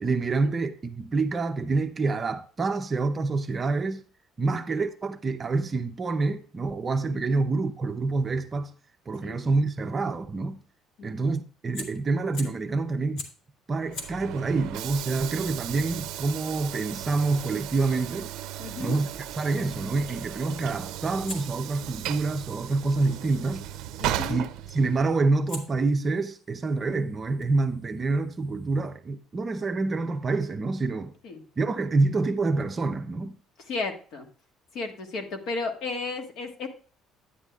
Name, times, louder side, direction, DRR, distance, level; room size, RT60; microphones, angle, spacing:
voice 1, 0.0-4.0 4.4-8.7 9.1-10.6 11.0-13.2 13.7-18.3 18.8-23.7 24.3-31.1 31.6-33.4, right 3 dB, 20° right, 0.6 m, -27 dB
Fire, 11.7-12.7 13.2-13.5 13.9-18.8 21.3-23.4 24.7-25.0 25.5-28.9, left 3 dB, 85° left, 2.0 m, -47 dB
Train / Sliding door, 13.8-25.2, right 12 dB, 75° right, 0.5 m, -36 dB
voice 2, 18.6-19.0 24.0-24.4 31.2-31.4 33.7-34.3 34.7-36.7, left 3 dB, 55° left, 1.5 m, -33 dB
9.9 x 9.8 x 2.4 m
cardioid pair, 165°, 0 cm